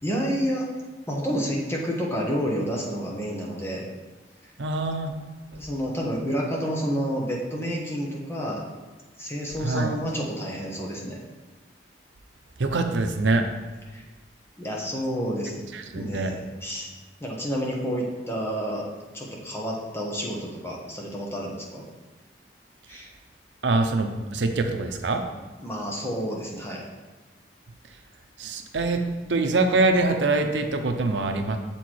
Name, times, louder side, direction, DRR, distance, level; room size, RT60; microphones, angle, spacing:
voice 1, 0.0-0.7 1.1-3.8 5.6-8.6 9.2-11.2 13.9-14.0 14.6-15.6 15.9-16.9 17.2-18.9 19.1-21.8 22.9-23.1 25.6-26.8, equal, 15° left, -2 dB, 1.1 m, -29 dB
voice 2, 4.6-5.1 9.6-9.9 12.6-13.5 15.7-16.3 23.6-25.2 28.4-29.0 29.3-31.6, right 3 dB, 90° right, 5 dB, 0.7 m, -24 dB
7.1 x 4.4 x 4.6 m, 1.3 s
head